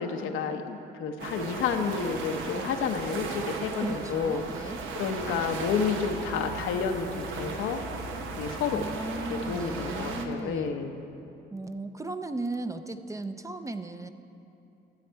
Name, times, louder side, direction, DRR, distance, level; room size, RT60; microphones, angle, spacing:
voice 1, 0.0-4.4 5.0-7.8 8.4-8.9 9.5-11.0, left 6 dB, 90° left, 5 dB, 0.8 m, -30 dB
sound 1, 1.2-10.3, right 4 dB, 85° right, 0.9 m, -37 dB
voice 2, 3.8-4.8 8.7-10.7 11.5-14.1, right 2 dB, 15° right, 9 dB, 0.5 m, -36 dB
13.0 x 7.7 x 4.6 m, 2.8 s
cardioid pair, 90°, 20 cm